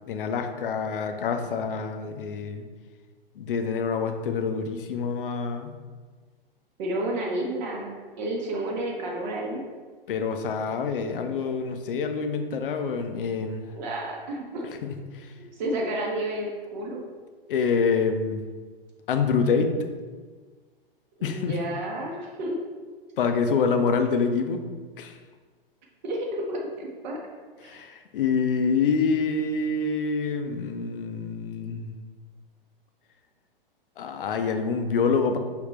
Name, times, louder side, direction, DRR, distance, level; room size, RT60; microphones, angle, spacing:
voice 1, 0.1-2.7 3.4-5.7 10.1-13.7 14.8-15.3 17.5-18.4 19.1-19.7 21.2-21.6 23.2-24.6 25.0-25.2 27.6-32.0 34.0-35.4, left 5 dB, 65° left, 6 dB, 0.6 m, -26 dB
voice 2, 6.8-9.6 13.7-14.7 15.4-17.0 21.2-22.6 26.0-27.2 27.6-27.8, right 1 dB, 50° right, -1 dB, 0.8 m, -31 dB
5.1 x 2.8 x 3.1 m, 1.4 s
figure-of-eight pair, 110°, 29 cm